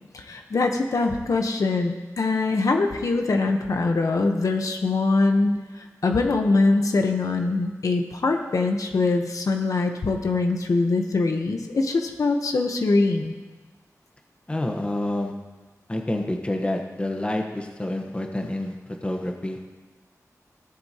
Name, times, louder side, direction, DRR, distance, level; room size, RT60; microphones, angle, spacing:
voice 1, 0.1-13.3, left 3 dB, 70° left, 4 dB, 0.9 m, -23 dB
voice 2, 14.5-15.3 15.9-18.7 19.0-19.6, left 1 dB, 20° left, 3 dB, 1.0 m, -28 dB
17.0 x 7.8 x 2.9 m, 1.3 s
wide cardioid pair, 100°, 6 cm